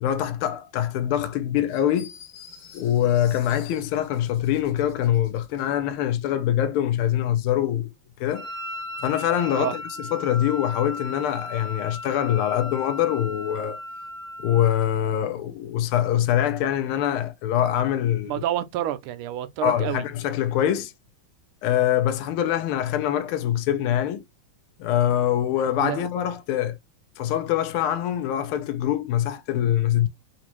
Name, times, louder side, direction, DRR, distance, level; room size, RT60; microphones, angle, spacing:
voice 1, 0.0-2.1 2.7-7.9 8.2-8.5 9.0-13.8 14.4-18.4 19.6-20.9 21.6-24.2 24.8-26.8 27.2-30.1, left 11 dB, 85° left, 1.5 m, -24 dB
sound 1, 1.7-5.7, left 7 dB, 70° left, 1.6 m, -49 dB
Wind instrument woodwind instrument, 8.3-14.9, left 2 dB, 35° right, 1.9 m, -36 dB
voice 2, 18.2-20.1 25.8-26.0, right 11 dB, 85° right, 1.5 m, -28 dB
4.1 x 2.5 x 2.9 m
omnidirectional pair, 2.3 m